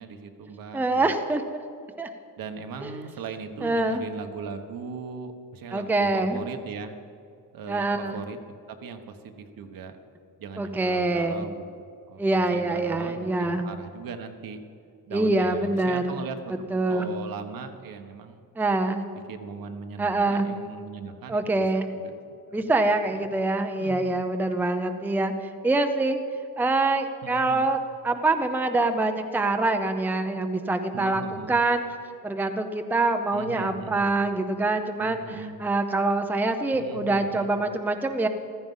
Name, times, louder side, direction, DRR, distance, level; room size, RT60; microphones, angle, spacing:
voice 1, 0.0-1.2 2.4-6.9 7.5-8.4 8.7-10.0 10.4-14.6 15.1-18.4 19.3-23.2 23.8-24.2 27.2-27.7 30.9-31.5 33.3-34.1 35.0-35.6 36.7-37.5, right 5 dB, 70° right, 7 dB, 1.3 m, -39 dB
voice 2, 0.7-1.4 2.0-2.1 2.8-2.9 3.6-4.0 5.7-6.4 7.7-8.2 10.6-11.3 12.2-13.7 15.1-16.2 16.7-17.1 18.6-19.0 20.0-20.5 21.3-21.9 22.5-25.3 25.6-26.2 26.6-27.8 28.0-31.2 31.5-31.8 32.2-38.3, right 2 dB, 5° right, 6 dB, 0.6 m, -25 dB
15.0 x 13.5 x 5.6 m, 2.4 s
cardioid pair, 160°, 36 cm